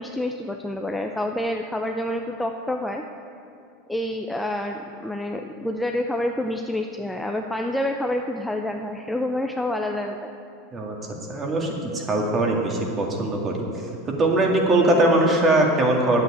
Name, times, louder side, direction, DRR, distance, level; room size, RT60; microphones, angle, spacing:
voice 1, 0.0-3.0 3.9-10.3, left 1 dB, 5° left, 3 dB, 0.6 m, -28 dB
voice 2, 11.3-13.7 14.2-16.2, right 2 dB, 25° right, 0 dB, 2.2 m, -21 dB
9.3 x 8.0 x 8.7 m, 2.5 s
supercardioid pair, 120°, 0 cm